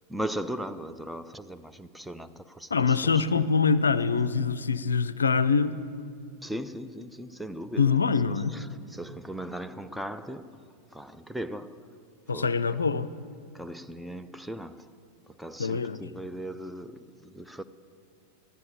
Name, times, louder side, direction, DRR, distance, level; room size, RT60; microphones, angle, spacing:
voice 1, 0.1-3.2 6.4-8.0 8.3-12.0 12.3-12.5 13.5-14.9 15.3-17.6, right 1 dB, ahead, 0.4 m, -38 dB
voice 2, 2.7-5.8 7.8-8.6 12.3-13.1 15.6-16.0, left 5 dB, 75° left, 0.4 m, -24 dB
13.5 x 9.8 x 7.3 m
figure-of-eight pair, 90°, 0 cm